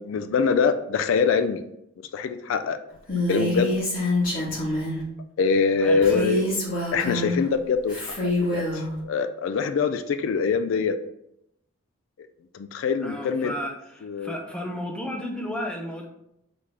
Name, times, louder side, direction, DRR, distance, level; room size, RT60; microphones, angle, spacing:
voice 1, 0.0-1.6 2.1-2.8 3.3-3.7 5.4-6.5 6.9-10.9 12.5-13.5 14.0-14.4, left 5 dB, 75° left, 10 dB, 0.3 m, -24 dB
Female speech woman speaking, 3.1-5.0 6.0-7.4 7.9-8.8, left 1 dB, 45° left, 1.5 m, -26 dB
voice 2, 5.8-6.5 13.0-16.1, equal, 5° left, 1 dB, 0.5 m, -33 dB
4.1 x 3.2 x 3.5 m, 0.80 s
head